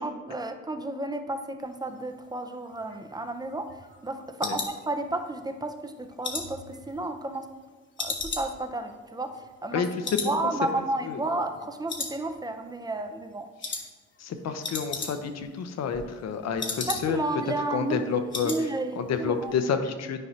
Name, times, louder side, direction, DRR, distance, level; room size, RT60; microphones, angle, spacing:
voice 1, 0.0-3.8 4.0-7.5 8.0-13.5 16.8-18.0 18.4-19.5, right 2 dB, 15° right, 7 dB, 0.5 m, -32 dB
sound 1, 2.7-5.5 5.8-7.6 8.0-9.8 10.0-10.4 10.7-10.8 11.2-11.6 11.9-12.7 13.0-13.2 13.6-13.9 14.2-14.3 14.5-15.4 15.7-17.3 17.7-17.8 18.0-18.6 18.9-19.2 19.5-19.6, left 4 dB, 40° left, 1.2 m, -36 dB
voice 2, 14.2-17.2 17.7-18.5 19.0-20.2, left 6 dB, 60° left, 8 dB, 0.8 m, -29 dB
9.8 x 4.7 x 2.8 m, 1.3 s
cardioid pair, 90°, 30 cm